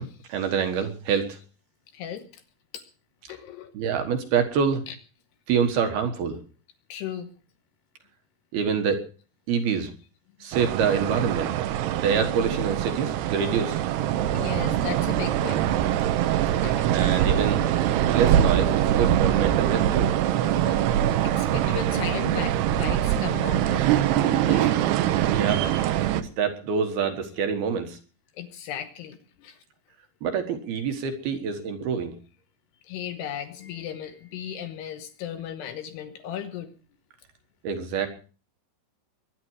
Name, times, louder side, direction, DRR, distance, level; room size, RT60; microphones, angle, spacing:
voice 1, 0.0-1.4 3.7-4.8 5.5-6.4 8.5-9.0 9.5-9.9 10.4-11.5 12.0-13.8 16.5-16.7 16.9-17.6 18.1-20.1 24.6-24.8 25.1-28.0 30.2-32.2 37.6-38.1, right 6 dB, 65° right, 7 dB, 2.8 m, -26 dB
voice 2, 1.9-2.4 2.7-2.8 3.3-3.7 4.9-5.0 6.9-7.3 14.3-15.7 16.6-16.9 20.7-24.8 28.4-29.6 32.8-36.7, left 10 dB, 75° left, 8 dB, 2.6 m, -36 dB
sound 1, 10.5-26.2, right 11 dB, 80° right, 2.4 m, -23 dB
22.5 x 10.5 x 4.7 m, 0.37 s
omnidirectional pair, 6.0 m